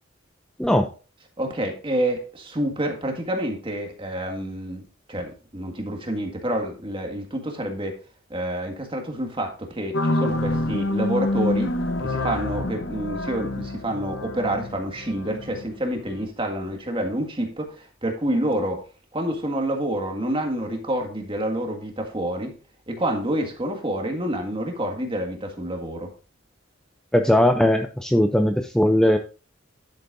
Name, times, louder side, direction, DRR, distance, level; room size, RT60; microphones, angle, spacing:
voice 1, 1.4-8.0 8.3-11.7 12.0-18.8 19.1-22.5 22.9-26.1, right 1 dB, 25° right, 3 dB, 1.8 m, -28 dB
sound 1, 9.9-16.2, left 1 dB, 65° left, 1.0 m, -27 dB
voice 2, 27.1-29.2, left 1 dB, 5° left, 5 dB, 0.5 m, -19 dB
10.5 x 8.2 x 2.6 m, 0.35 s
head